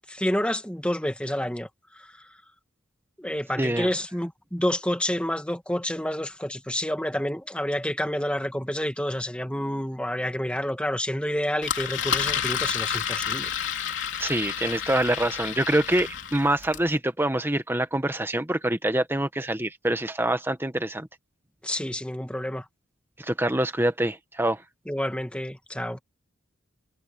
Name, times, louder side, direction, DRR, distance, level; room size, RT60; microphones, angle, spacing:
voice 1, 0.1-1.7 3.2-13.5 21.6-22.6 24.9-26.0, equal, 5° left, 2.1 m, -29 dB
voice 2, 3.6-3.9 14.2-21.1 23.2-24.6, right 1 dB, 10° right, 1.4 m, -25 dB
Engine, 11.6-16.9, left 8 dB, 60° left, 3.8 m, -30 dB
head